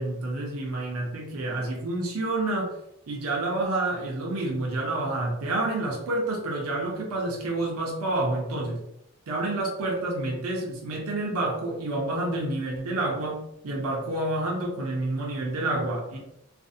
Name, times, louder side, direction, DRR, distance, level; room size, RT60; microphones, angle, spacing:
voice 1, 0.0-2.7 3.1-8.8 9.3-16.2, right 2 dB, 75° right, -1 dB, 0.6 m, -29 dB
2.5 x 2.0 x 2.5 m, 0.78 s
head